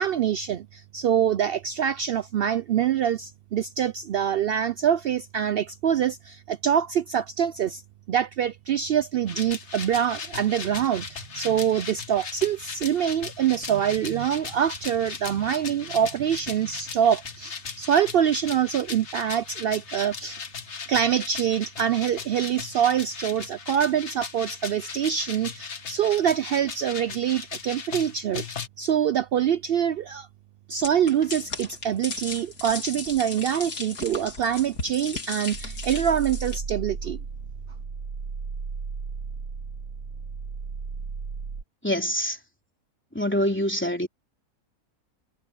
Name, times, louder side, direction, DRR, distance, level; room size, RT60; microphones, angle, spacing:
voice 1, 0.0-7.8 8.1-20.4 20.9-28.4 28.8-30.3 30.7-37.2, right 9 dB, 85° right, 0.5 m, -25 dB
sound 1, 9.3-28.7, left 5 dB, 50° left, 1.6 m, -38 dB
sound 2, 30.8-36.6, left 3 dB, 70° left, 3.1 m, -36 dB
sound 3, 35.5-41.6, right 5 dB, 60° right, 1.7 m, -35 dB
voice 2, 41.8-42.4 43.1-44.1, equal, 5° left, 3.3 m, -25 dB
omnidirectional pair, 1.6 m